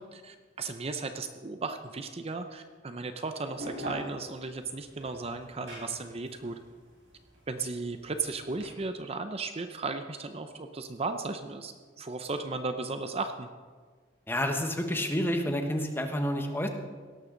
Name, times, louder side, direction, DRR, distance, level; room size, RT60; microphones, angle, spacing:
voice 1, 0.1-6.6 7.5-13.5, right 3 dB, 35° right, 8 dB, 0.7 m, -35 dB
sound 1, 3.4-8.7, right 1 dB, 90° right, 5.1 m, -42 dB
voice 2, 14.3-16.7, equal, 10° left, 4 dB, 1.2 m, -29 dB
17.5 x 13.0 x 3.9 m, 1.5 s
head